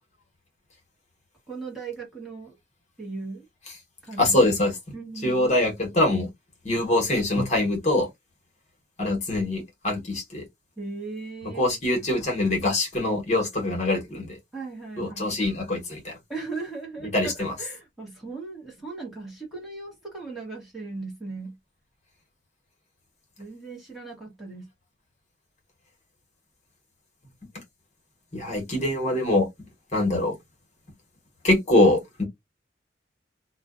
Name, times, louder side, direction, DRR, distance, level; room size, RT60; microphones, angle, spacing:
voice 1, 1.5-2.6 3.0-3.5 4.0-4.5 4.9-5.5 10.8-11.7 14.5-15.4 16.3-17.3 17.6-21.6 23.4-24.7, right 3 dB, ahead, 1.0 m, -37 dB
voice 2, 4.2-4.7 5.2-6.3 6.6-8.1 9.0-10.4 11.5-14.4 15.0-16.1 17.1-17.5 28.3-29.5 29.9-30.3 31.4-32.2, left 1 dB, 40° left, 1.1 m, -23 dB
2.4 x 2.2 x 2.3 m
head